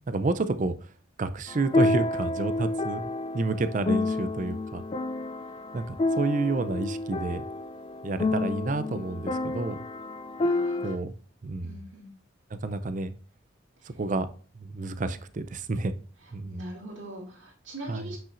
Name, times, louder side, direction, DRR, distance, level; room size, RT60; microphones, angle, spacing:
voice 1, 0.1-0.7 1.2-4.8 5.7-7.4 8.0-9.8 10.8-11.1 11.4-11.8 12.6-13.1 13.9-14.3 14.6-15.9 16.3-16.6 17.9-18.1, right 3 dB, 40° right, 12 dB, 0.5 m, -29 dB
sound 1, 1.5-11.0, left 2 dB, 25° left, 0.3 m, -29 dB
voice 2, 10.4-10.9 11.6-12.1 16.2-18.2, right 1 dB, 75° right, -4 dB, 2.4 m, -42 dB
8.5 x 5.6 x 2.5 m, 0.41 s
head